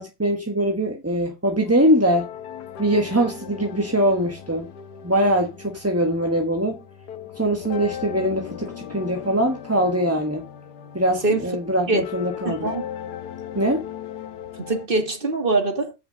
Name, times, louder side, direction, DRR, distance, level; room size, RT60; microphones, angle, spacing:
voice 1, 0.0-2.3 2.8-4.7 5.0-6.8 7.4-10.4 10.9-12.7 13.5-13.8, right 1 dB, 10° right, 1.0 m, -22 dB
sound 1, 1.6-14.9, left 9 dB, 80° left, 1.6 m, -38 dB
voice 2, 12.4-12.8 14.6-15.9, right 2 dB, 35° right, 2.0 m, -23 dB
8.0 x 5.7 x 6.3 m
omnidirectional pair, 1.7 m